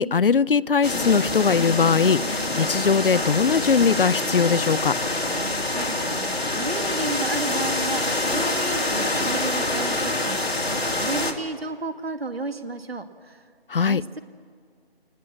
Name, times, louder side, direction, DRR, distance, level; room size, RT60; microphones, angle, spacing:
voice 1, 0.0-4.9 13.7-14.0, left 5 dB, 60° left, 22 dB, 0.6 m, -20 dB
sound 1, 0.8-11.3, left 2 dB, 80° left, 2.9 m, -26 dB
voice 2, 5.2-13.4 13.8-14.2, right 3 dB, 75° right, 9 dB, 2.0 m, -33 dB
23.5 x 20.0 x 7.5 m, 2.2 s
figure-of-eight pair, 165°, 30 cm